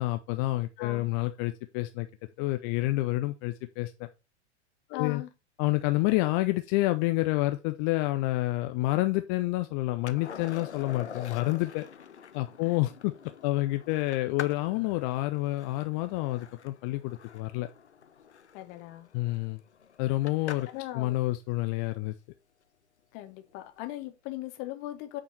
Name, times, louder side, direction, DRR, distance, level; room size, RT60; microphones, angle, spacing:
voice 1, 0.0-2.1 2.4-4.1 4.9-5.2 5.6-11.8 12.3-13.1 13.4-17.7 19.1-19.6 20.0-20.7 21.0-22.1, left 19 dB, 20° left, 0.3 m, -28 dB
voice 2, 0.8-1.1 4.9-5.3 12.6-12.8 18.5-19.1 20.7-21.2 23.1-25.2, left 15 dB, 35° left, 1.4 m, -39 dB
Skateboard, 10.1-20.9 23.5-23.6, left 7 dB, 75° left, 0.9 m, -46 dB
8.5 x 4.5 x 4.5 m
figure-of-eight pair, 95°, 34 cm